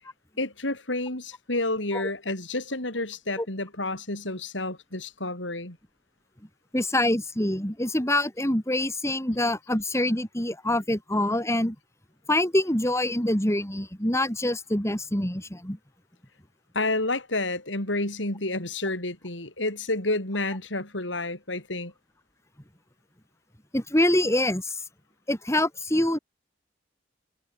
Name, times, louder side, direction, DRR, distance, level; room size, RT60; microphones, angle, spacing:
voice 1, 0.4-5.8 16.7-21.9, left 2 dB, 90° left, 7.7 m, -30 dB
voice 2, 6.7-11.7 12.3-15.8 23.7-24.8 25.3-26.2, left 1 dB, 15° left, 4.9 m, -25 dB
head